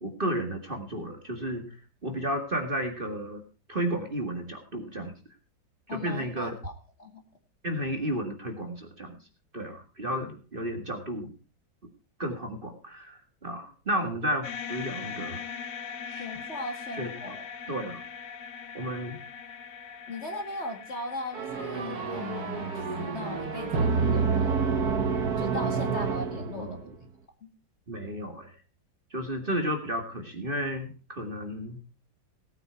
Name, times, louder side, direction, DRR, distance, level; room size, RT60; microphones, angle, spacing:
voice 1, 0.0-1.7 2.0-3.4 3.7-5.1 5.9-6.5 7.6-9.2 9.5-11.3 12.2-15.4 16.0-16.3 16.9-17.4 17.7-18.0 18.7-19.2 26.4-26.8 27.9-28.5 29.1-31.8, right 1 dB, 30° right, 4 dB, 2.0 m, -32 dB
voice 2, 5.9-7.2 16.1-17.8 20.1-24.7 25.4-26.7 27.4-27.5, left 2 dB, 35° left, 4 dB, 2.1 m, -38 dB
sound 1, 14.4-24.7, left 7 dB, 70° left, 1.8 m, -42 dB
sound 2, 21.3-26.9, right 5 dB, 55° right, 1.8 m, -28 dB
18.0 x 9.0 x 4.5 m, 0.35 s
omnidirectional pair, 2.1 m